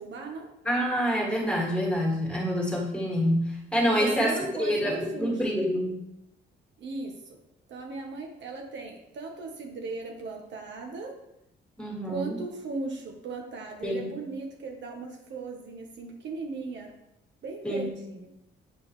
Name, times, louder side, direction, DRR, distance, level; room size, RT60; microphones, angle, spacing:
voice 1, 0.0-0.5 4.0-5.4 6.8-7.4 7.7-11.1 12.1-16.9 17.4-18.3, right 3 dB, 65° right, 2 dB, 1.2 m, -37 dB
voice 2, 0.6-6.0 11.8-12.4 13.8-14.1 17.6-17.9, equal, 5° left, -2 dB, 2.2 m, -27 dB
8.2 x 4.5 x 3.2 m, 0.83 s
cardioid pair, 90°, 20 cm